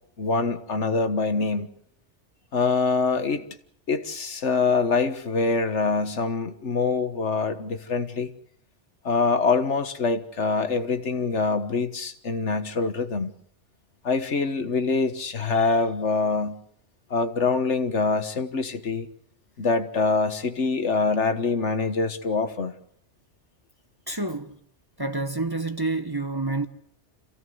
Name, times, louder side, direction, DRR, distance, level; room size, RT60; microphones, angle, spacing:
voice 1, 0.2-1.7 2.5-3.4 3.9-8.3 9.0-13.3 14.0-16.6 17.1-19.1 19.6-22.7, left 4 dB, 75° left, 1.8 m, -24 dB
voice 2, 24.1-24.5 25.0-26.7, right 2 dB, 20° right, 1.1 m, -28 dB
27.0 x 16.5 x 7.9 m
omnidirectional pair, 1.2 m